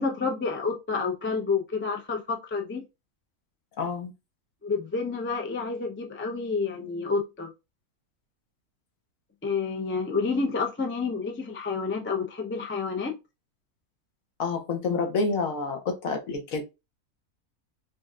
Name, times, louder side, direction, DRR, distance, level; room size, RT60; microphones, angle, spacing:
voice 1, 0.0-2.8 4.6-7.5 9.4-13.2, left 4 dB, 20° left, 0.3 m, -29 dB
voice 2, 3.8-4.1 14.4-16.6, left 4 dB, 65° left, 1.3 m, -28 dB
5.1 x 2.7 x 2.4 m
omnidirectional pair, 1.6 m